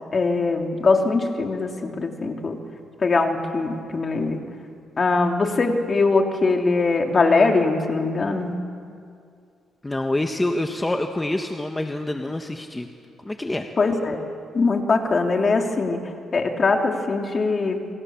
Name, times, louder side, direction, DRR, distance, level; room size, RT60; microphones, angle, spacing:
voice 1, 0.1-2.6 3.0-4.4 5.0-8.6 13.8-14.2 14.5-17.9, left 3 dB, 35° left, 3 dB, 3.1 m, -22 dB
voice 2, 9.8-12.9 13.2-13.7, left 1 dB, 15° left, 4 dB, 1.6 m, -26 dB
28.0 x 26.0 x 7.3 m, 2.4 s
cardioid pair, 90°, 0 cm